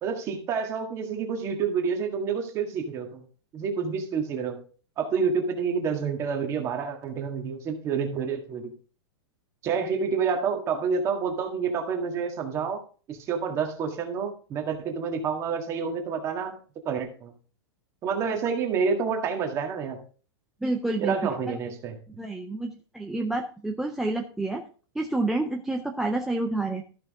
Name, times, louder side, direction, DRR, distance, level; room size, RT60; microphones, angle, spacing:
voice 1, 0.0-3.2 3.5-4.6 5.0-8.7 9.6-12.8 13.1-16.6 16.9-17.3 18.0-20.0 21.0-21.9, right 6 dB, 20° right, 3 dB, 1.8 m, -28 dB
voice 2, 20.6-21.3 22.2-24.6 25.0-26.8, right 2 dB, 5° right, 2 dB, 0.5 m, -29 dB
13.5 x 6.1 x 3.6 m, 0.39 s
supercardioid pair, 165°, 14 cm